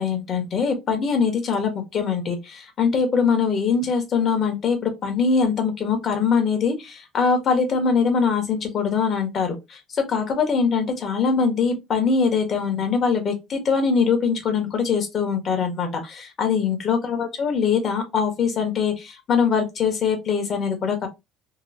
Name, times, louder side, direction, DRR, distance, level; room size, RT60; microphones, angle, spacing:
voice 1, 0.0-21.1, left 5 dB, 40° left, 1.1 m, -22 dB
2.9 x 2.5 x 2.5 m
cardioid pair, 115°, 0 cm